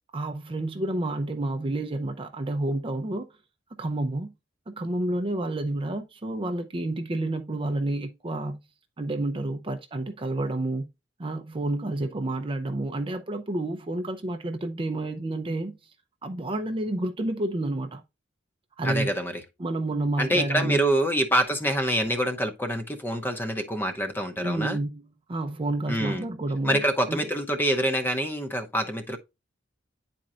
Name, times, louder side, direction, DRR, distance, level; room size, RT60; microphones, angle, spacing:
voice 1, 0.1-3.3 3.8-4.3 4.7-8.6 9.0-10.8 11.2-15.8 16.2-18.0 18.8-19.1 19.6-20.8 24.4-27.3, right 2 dB, 30° right, 0.5 m, -30 dB
voice 2, 18.8-19.4 20.2-24.8 25.9-26.2 26.6-29.2, equal, 10° left, 0.7 m, -26 dB
9.9 x 4.3 x 2.4 m
head